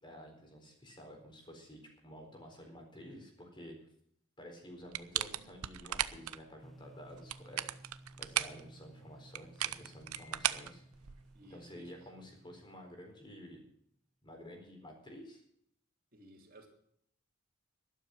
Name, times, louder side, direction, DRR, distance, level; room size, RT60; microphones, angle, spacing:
voice 1, 0.0-3.7 4.4-7.7 8.2-10.8 11.5-13.6 14.2-15.4, equal, 20° left, 2 dB, 4.2 m, -51 dB
sound 1, 4.9-6.4 7.1-8.6 9.3-11.4, right 12 dB, 90° right, 0.7 m, -36 dB
sound 2, 6.6-13.4, right 1 dB, ahead, 0.6 m, -58 dB
sound 3, 7.1-7.4 8.2-8.3 8.6-8.7 9.1-9.2 9.8-11.2, left 3 dB, 85° left, 4.7 m, -61 dB
voice 2, 11.3-12.1 16.1-16.7, right 1 dB, 40° right, 1 dB, 3.2 m, -57 dB
12.0 x 12.0 x 6.4 m, 0.68 s
head